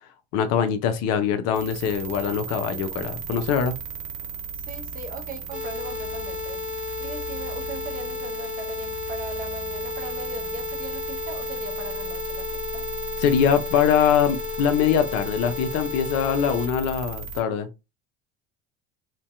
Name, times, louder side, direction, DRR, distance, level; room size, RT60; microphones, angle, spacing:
voice 1, 0.3-3.7 13.2-17.7, left 7 dB, 55° left, 0.6 m, -23 dB
sound 1, 1.5-17.4, right 5 dB, 70° right, 0.7 m, -36 dB
voice 2, 4.5-6.6 7.0-12.8, right 3 dB, 30° right, 0.6 m, -39 dB
sound 2, 5.5-16.7, left 6 dB, 5° right, 1.1 m, -33 dB
2.6 x 2.2 x 2.3 m
hypercardioid pair, 70°, 31 cm